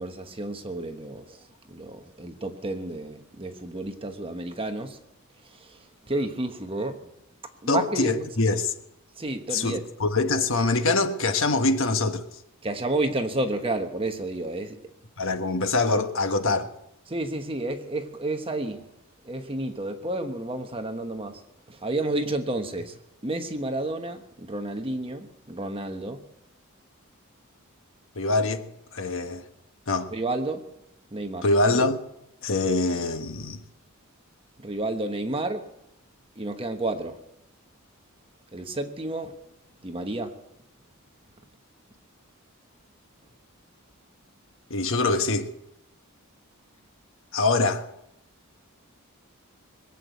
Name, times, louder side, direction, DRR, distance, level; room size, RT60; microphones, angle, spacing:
voice 1, 0.0-1.4 1.7-5.0 5.6-5.7 6.1-7.0 7.6-8.3 9.2-9.8 12.6-14.8 17.1-18.8 19.2-21.4 21.7-22.9 23.2-26.2 30.1-30.6 31.1-31.4 34.6-35.6 36.4-37.2 38.5-39.4 39.8-40.3, right 2 dB, 25° right, 1.1 m, -30 dB
voice 2, 7.7-8.7 9.5-12.2 15.2-16.7 28.1-28.6 28.9-29.4 29.9-30.1 31.4-32.0 32.4-33.6 44.7-45.5 47.3-47.8, left 3 dB, 65° left, 1.3 m, -24 dB
21.5 x 8.3 x 8.2 m
head